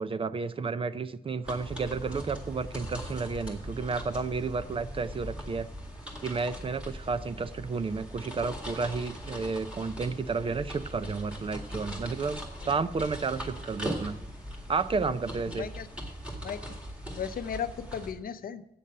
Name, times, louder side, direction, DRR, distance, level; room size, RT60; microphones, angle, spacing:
voice 1, 0.0-5.7 6.2-14.2 14.7-15.7, right 4 dB, 35° right, 13 dB, 0.4 m, -32 dB
sound 1, 1.4-18.1, equal, 5° right, 2.0 m, -40 dB
voice 2, 17.2-18.6, left 8 dB, 65° left, 11 dB, 0.6 m, -35 dB
8.6 x 6.8 x 7.4 m, 0.87 s
wide cardioid pair, 165°, 16 cm